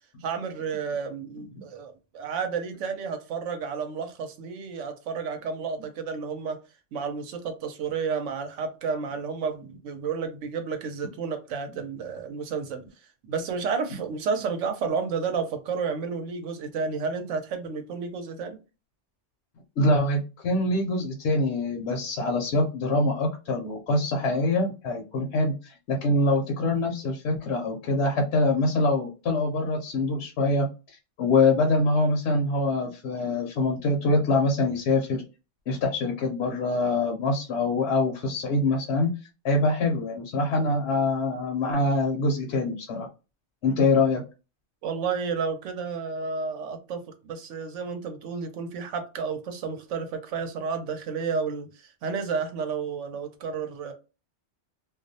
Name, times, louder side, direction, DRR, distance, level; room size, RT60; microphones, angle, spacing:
voice 1, 0.2-6.6 6.9-12.9 13.2-18.6 44.8-53.9, right 5 dB, 80° right, 0.9 m, -31 dB
voice 2, 19.8-35.2 35.7-39.1 39.4-43.1 43.6-44.2, left 2 dB, 65° left, 0.8 m, -24 dB
2.3 x 2.0 x 2.6 m
omnidirectional pair, 1.3 m